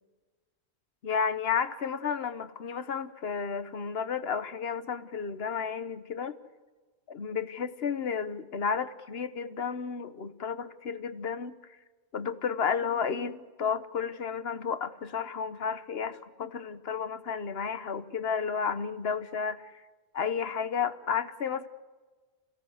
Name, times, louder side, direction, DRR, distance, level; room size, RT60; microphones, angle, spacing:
voice 1, 1.0-6.4 7.1-11.5 12.1-19.8 20.1-21.7, left 6 dB, 65° left, 12 dB, 1.3 m, -32 dB
28.5 x 17.0 x 8.0 m, 1.3 s
omnidirectional pair, 1.1 m